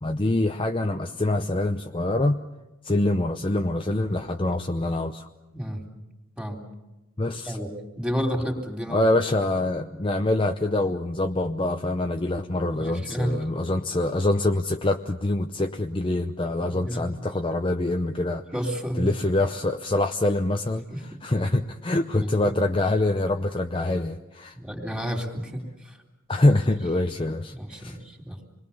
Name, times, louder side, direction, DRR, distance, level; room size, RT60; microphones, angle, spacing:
voice 1, 0.0-2.4 2.8-5.3 7.2-7.6 8.9-18.4 19.0-24.6 26.3-28.0, left 2 dB, 25° left, 5 dB, 0.7 m, -25 dB
voice 2, 8.0-9.1 12.8-13.3 16.6-17.0 18.5-19.1 20.9-21.0 22.2-22.6 24.5-26.0 27.5-28.4, equal, 5° right, 2 dB, 3.4 m, -31 dB
27.0 x 21.5 x 7.1 m, 1.0 s
head